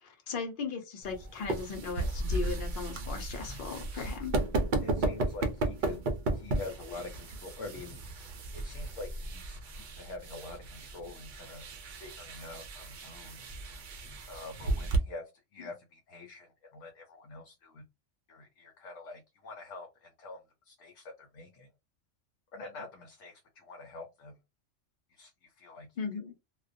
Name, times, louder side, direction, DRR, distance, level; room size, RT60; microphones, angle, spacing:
voice 1, 0.0-4.3 15.6-15.7 26.0-26.3, left 5 dB, 50° left, 0.8 m, -37 dB
sound 1, 1.0-15.0, right 2 dB, 60° right, 0.5 m, -35 dB
voice 2, 4.8-6.0 6.3-8.0 8.5-11.6 12.0-13.4 14.3-17.8 18.3-20.4 20.7-21.7 22.5-24.3 25.1-25.9, left 3 dB, 75° left, 0.9 m, -46 dB
2.3 x 2.1 x 2.5 m
omnidirectional pair, 1.3 m